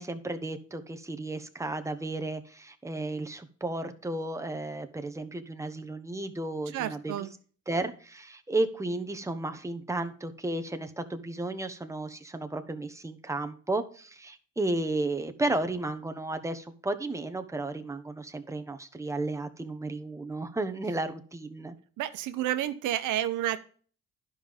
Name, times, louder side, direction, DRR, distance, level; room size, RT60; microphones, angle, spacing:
voice 1, 0.0-7.3 7.7-21.7, right 2 dB, 10° right, 7 dB, 1.1 m, -33 dB
voice 2, 6.7-7.3 22.0-23.6, right 12 dB, 90° right, 11 dB, 0.8 m, -30 dB
11.0 x 5.4 x 5.2 m, 0.43 s
cardioid pair, 90°, 30 cm